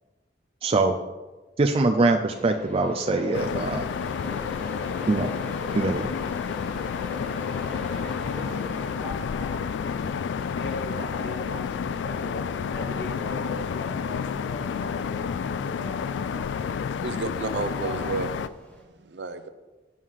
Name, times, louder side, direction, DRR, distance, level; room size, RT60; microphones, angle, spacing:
voice 1, 0.6-1.0 1.6-3.9 5.1-5.3 5.7-6.1, right 3 dB, 30° right, 4 dB, 0.4 m, -23 dB
Train, 2.2-18.8, left 2 dB, 5° left, 1.3 m, -41 dB
sound 1, 3.3-18.5, left 6 dB, 80° left, 0.3 m, -30 dB
voice 2, 10.6-14.3 14.8-15.3, left 1 dB, 65° left, 3 dB, 0.8 m, -38 dB
voice 3, 14.6-15.1 15.6-18.3 18.6-19.5, right 3 dB, 70° right, 9 dB, 0.7 m, -34 dB
7.4 x 5.6 x 6.3 m, 1.2 s
head